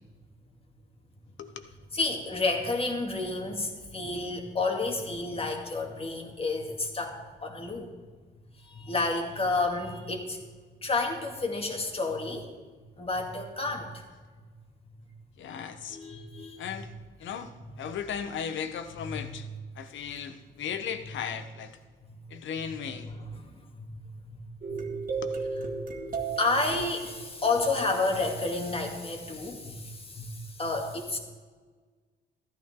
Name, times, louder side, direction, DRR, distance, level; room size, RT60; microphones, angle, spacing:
voice 1, 1.9-7.9 8.6-10.4 10.8-12.5 13.0-14.0 15.9-16.6 19.2-19.3 23.0-23.1 23.4-23.5 23.8-23.9 24.7-24.8 26.3-31.2, left 3 dB, 30° left, 2 dB, 2.4 m, -30 dB
voice 2, 15.4-16.0 16.6-16.9 17.2-17.5 17.8-19.5 19.8-21.8 22.3-23.1 25.2-25.3, left 7 dB, 75° left, 9 dB, 1.1 m, -36 dB
sound 1, 24.6-29.1, right 5 dB, 45° right, 2.0 m, -36 dB
14.0 x 12.0 x 3.8 m, 1.4 s
cardioid pair, 90°, 20 cm